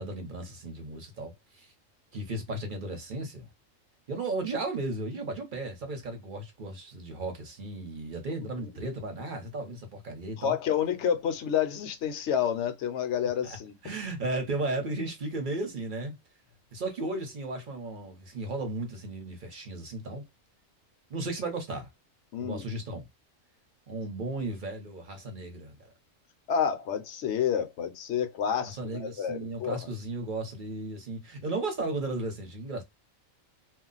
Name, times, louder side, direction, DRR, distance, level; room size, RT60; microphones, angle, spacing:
voice 1, 0.0-1.7 2.1-3.5 4.1-10.6 13.4-13.6 13.8-16.2 16.7-20.2 21.1-21.9 22.4-23.1 23.9-25.9 28.6-32.8, right 2 dB, 45° right, 0.8 m, -35 dB
voice 2, 10.4-13.7 22.3-22.6 26.5-29.8, left 8 dB, 70° left, 0.8 m, -29 dB
2.4 x 2.0 x 3.8 m
omnidirectional pair, 1.4 m